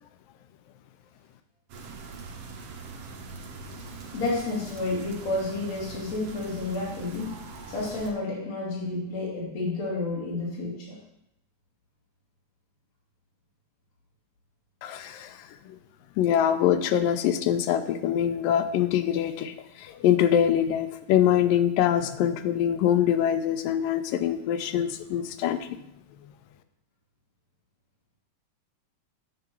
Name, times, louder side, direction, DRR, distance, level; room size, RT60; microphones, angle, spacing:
sound 1, 1.7-8.1, right 4 dB, 55° right, 1.9 m, -42 dB
voice 1, 4.1-7.3 7.7-11.0, left 2 dB, 55° left, -5 dB, 3.9 m, -30 dB
voice 2, 14.8-15.4 15.7-15.8 16.2-25.7, left 10 dB, 90° left, 10 dB, 2.4 m, -24 dB
9.5 x 5.9 x 6.9 m, 0.81 s
omnidirectional pair, 3.9 m